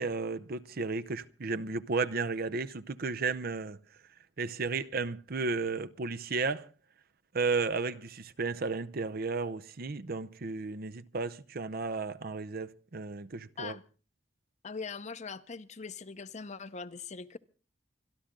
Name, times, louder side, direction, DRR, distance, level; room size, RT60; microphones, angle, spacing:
voice 1, 0.0-3.8 4.4-6.7 7.3-13.8, right 4 dB, 55° right, 0.7 m, -33 dB
voice 2, 14.6-17.4, left 5 dB, 40° left, 0.8 m, -41 dB
26.0 x 11.5 x 3.7 m
head